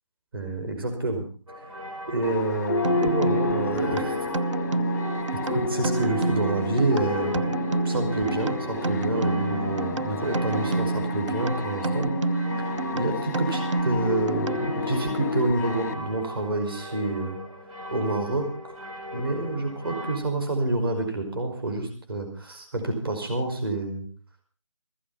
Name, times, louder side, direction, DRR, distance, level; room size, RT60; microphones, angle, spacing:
voice 1, 0.3-1.2 2.1-4.3 5.4-7.5 7.8-12.1 12.9-17.4 17.9-18.5 19.1-24.0, right 2 dB, 45° right, 4 dB, 5.4 m, -28 dB
sound 1, 1.5-20.2, left 1 dB, 80° right, 5.7 m, -39 dB
sound 2, 2.2-15.9, left 4 dB, 5° left, 0.9 m, -32 dB
sound 3, 2.8-15.0, right 3 dB, 65° right, 0.7 m, -29 dB
15.5 x 15.5 x 5.7 m, 0.39 s
figure-of-eight pair, 170°, 17 cm